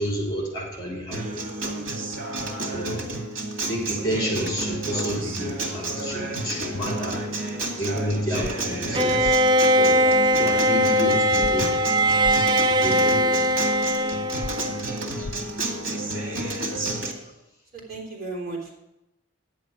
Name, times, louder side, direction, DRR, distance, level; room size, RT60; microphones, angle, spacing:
voice 1, 0.0-1.5 2.7-3.1 3.7-7.2 7.7-9.3 9.8-11.7 12.3-12.5 12.8-13.4, equal, 20° left, -2 dB, 3.4 m, -30 dB
Acoustic guitar, 1.1-17.1, right 2 dB, 80° right, 2.1 m, -31 dB
sound 1, 8.4-8.5 9.2-9.4 11.4-11.5 12.2-12.4 14.4-14.5 15.2-15.4, left 2 dB, 75° left, 0.5 m, -33 dB
Bowed string instrument, 8.9-15.0, equal, 25° right, 0.4 m, -20 dB
voice 2, 17.7-18.7, right 3 dB, 50° right, -3 dB, 3.4 m, -36 dB
10.5 x 9.2 x 4.9 m, 0.88 s
head